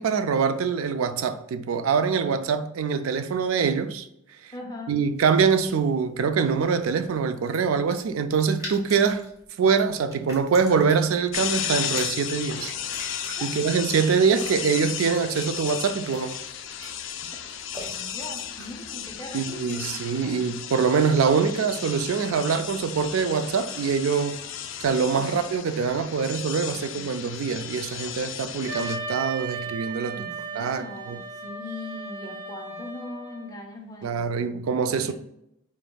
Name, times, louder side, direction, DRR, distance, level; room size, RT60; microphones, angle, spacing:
voice 1, 0.0-4.1 4.4-4.5 4.9-9.2 9.6-12.7 13.4-16.4 19.3-24.4 24.8-30.2 30.5-31.2 34.0-35.1, right 6 dB, 85° right, 0.4 m, -24 dB
voice 2, 4.5-5.0 13.4-13.5 17.9-20.5 26.6-27.1 30.1-35.1, left 1 dB, 20° left, 0.6 m, -41 dB
sound 1, 5.1-20.0, equal, 15° right, 1.1 m, -46 dB
sound 2, 11.3-29.0, left 9 dB, 65° left, 0.4 m, -34 dB
Wind instrument woodwind instrument, 28.7-33.6, right 4 dB, 60° right, 1.3 m, -36 dB
5.1 x 3.6 x 2.3 m
head